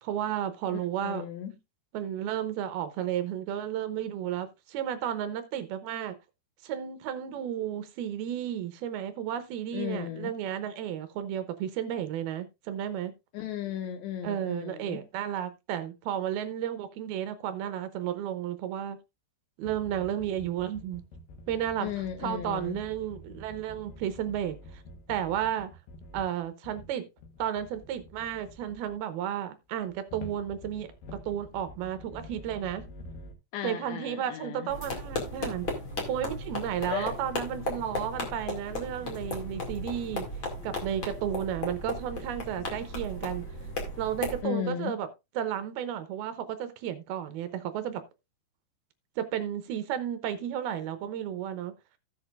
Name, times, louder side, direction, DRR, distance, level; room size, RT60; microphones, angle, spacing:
voice 1, 0.0-1.3 1.9-6.2 6.6-13.1 14.2-19.0 19.6-21.0 21.5-21.9 22.2-24.6 25.1-25.7 26.1-27.1 27.4-32.9 33.6-35.7 36.1-40.3 40.6-43.5 44.0-45.1 45.4-48.0 49.2-51.7, right 10 dB, 75° right, 2.5 m, -33 dB
voice 2, 0.7-1.5 9.7-10.3 13.3-15.0 21.8-22.8 33.5-34.7 36.9-37.1 44.4-45.0, left 10 dB, 85° left, 3.6 m, -35 dB
sound 1, 19.6-26.9 27.2-29.0 29.8-33.3, left 1 dB, 60° left, 2.6 m, -48 dB
sound 2, 34.7-44.4, left 2 dB, 35° left, 2.3 m, -36 dB
16.0 x 6.4 x 2.4 m
omnidirectional pair, 4.9 m